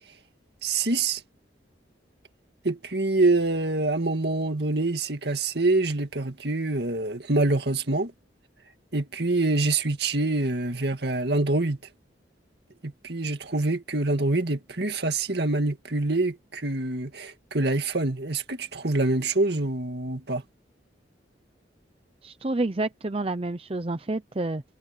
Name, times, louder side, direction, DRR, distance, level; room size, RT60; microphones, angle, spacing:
voice 1, 0.6-1.2 2.6-8.1 8.9-11.8 12.8-20.4, right 2 dB, 60° right, 2.1 m, -25 dB
voice 2, 22.2-24.6, right 2 dB, 30° right, 0.7 m, -29 dB
head